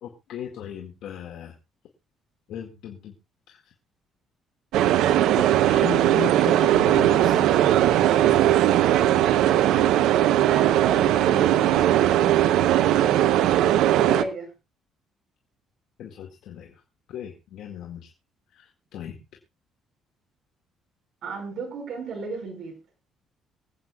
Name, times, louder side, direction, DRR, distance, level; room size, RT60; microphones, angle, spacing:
voice 1, 0.0-1.5 2.5-3.1 3.5-3.6 5.3-7.5 16.0-16.8 17.1-18.1 18.6-19.2, left 9 dB, 70° left, 2.0 m, -36 dB
sound 1, 4.7-14.2, right 12 dB, 80° right, 0.8 m, -19 dB
voice 2, 10.4-11.9 14.0-14.5 21.2-22.8, right 3 dB, 55° right, 5.2 m, -34 dB
24.5 x 8.6 x 2.4 m
cardioid pair, 145°, 0 cm